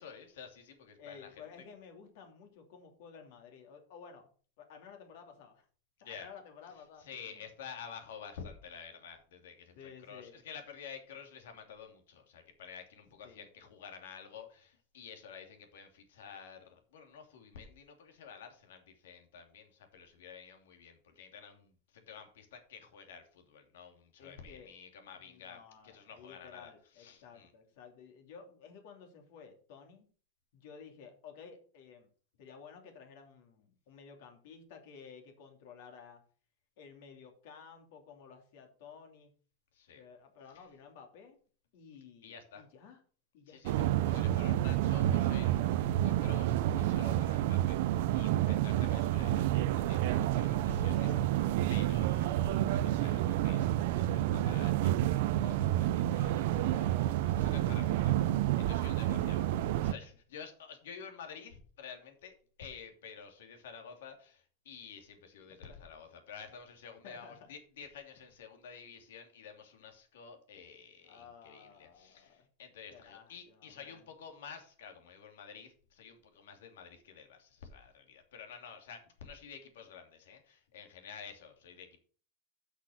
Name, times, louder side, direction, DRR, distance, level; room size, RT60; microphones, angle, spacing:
voice 1, 0.0-1.3 6.0-6.3 7.0-9.7 10.1-27.5 39.7-40.0 42.2-42.6 43.5-47.8 48.1-51.1 51.7-54.9 55.4-58.1 58.6-59.4 59.8-82.0, left 6 dB, 90° left, 5 dB, 2.8 m, -50 dB
voice 2, 1.0-4.3 4.6-5.7 6.0-7.5 9.7-10.4 13.2-13.5 24.2-24.7 25.2-30.1 30.5-32.1 32.4-36.2 36.8-39.3 39.9-41.4 41.7-43.0 43.3-43.8 50.5-51.4 57.6-58.5 59.1-59.3 65.7-65.8 67.0-67.5 71.0-72.5 72.9-74.1, left 6 dB, 60° left, 4 dB, 2.8 m, -54 dB
sound 1, 43.6-59.9, right 13 dB, 60° right, 0.6 m, -29 dB
8.1 x 6.3 x 6.4 m, 0.42 s
supercardioid pair, 165°, 0 cm